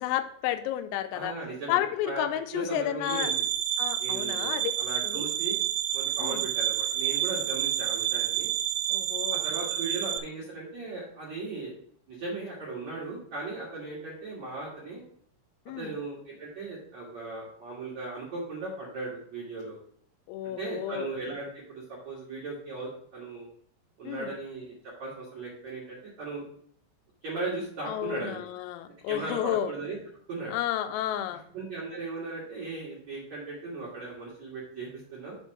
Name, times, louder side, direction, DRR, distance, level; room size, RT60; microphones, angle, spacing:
voice 1, 0.0-1.3 1.7-3.3 3.8-4.7 5.0-5.3 6.2-6.4 8.9-9.4 15.7-15.9 20.3-21.1 24.1-24.3 27.9-29.7 30.5-31.4, left 12 dB, 85° left, 9 dB, 3.3 m, -31 dB
voice 2, 1.1-2.3 2.5-3.4 4.0-5.5 5.9-8.5 9.3-11.7 12.1-15.0 15.8-19.8 20.4-23.5 24.0-26.4 27.2-28.5 29.1-30.0 30.3-30.5 31.3-35.4, right 3 dB, 65° right, -6 dB, 1.7 m, -37 dB
sound 1, 3.0-10.2, right 11 dB, 80° right, 3.3 m, -29 dB
7.2 x 4.5 x 5.8 m, 0.63 s
omnidirectional pair, 6.0 m